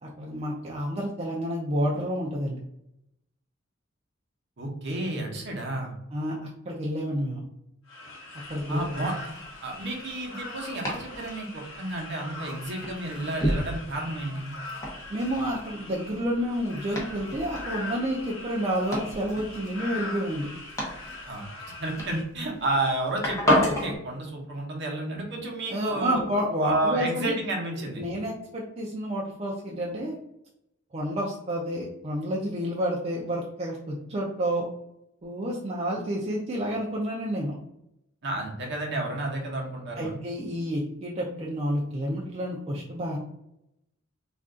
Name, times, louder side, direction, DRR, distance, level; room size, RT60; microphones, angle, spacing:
voice 1, 0.0-2.6 6.1-7.4 8.5-8.8 15.1-20.5 25.7-27.3 28.0-30.2 30.9-34.7 35.2-37.5 40.0-43.2, equal, 30° right, -4 dB, 0.4 m, -29 dB
voice 2, 4.6-5.9 8.7-9.1 9.6-14.5 21.3-21.4 21.8-26.2 26.6-28.0 38.2-40.2, right 2 dB, 55° right, 0 dB, 0.8 m, -31 dB
sound 1, 7.9-22.2, left 2 dB, 65° left, 0.8 m, -42 dB
Domestic sounds home sounds, 8.4-23.9, left 1 dB, 15° left, 0.7 m, -33 dB
2.5 x 2.3 x 3.6 m, 0.81 s
head